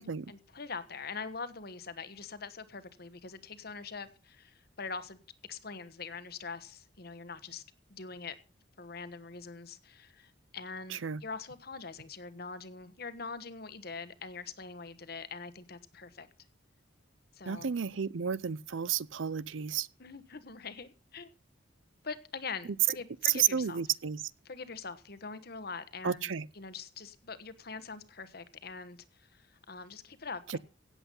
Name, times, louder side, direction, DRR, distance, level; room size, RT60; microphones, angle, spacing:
voice 1, 0.0-5.2 5.5-7.6 7.9-8.3 8.8-16.3 17.3-17.8 20.0-21.3 22.0-23.8 24.4-30.6, left 4 dB, 55° left, 1.3 m, -43 dB
voice 2, 17.5-19.9 23.3-24.2 26.0-26.4 30.5-30.6, right 7 dB, 85° right, 0.6 m, -32 dB
16.5 x 8.1 x 5.4 m
head